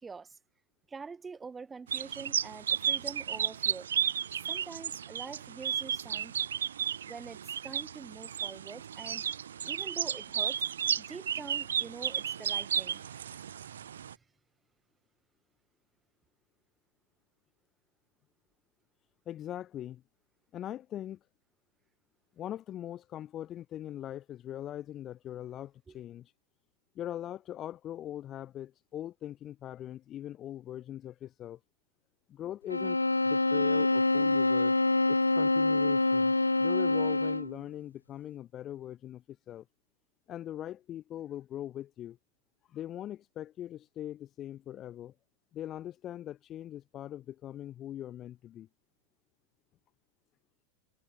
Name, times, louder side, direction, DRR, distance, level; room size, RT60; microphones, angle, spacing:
voice 1, 0.0-0.4 0.9-3.9 4.5-6.3 7.0-7.4 7.6-9.2 9.6-10.6 11.0-14.0 25.9-26.0, right 5 dB, 15° right, 1.8 m, -45 dB
sound 1, 1.9-14.1, right 8 dB, 65° right, 1.0 m, -33 dB
voice 2, 19.3-20.0 20.5-21.2 22.4-26.3 27.0-31.6 32.3-33.0 33.2-34.8 35.1-36.3 36.6-39.6 40.3-42.2 42.7-45.1 45.5-48.7, left 12 dB, 30° left, 0.7 m, -41 dB
sound 2, 32.7-37.6, left 2 dB, 85° left, 0.5 m, -26 dB
figure-of-eight pair, 90°, 0 cm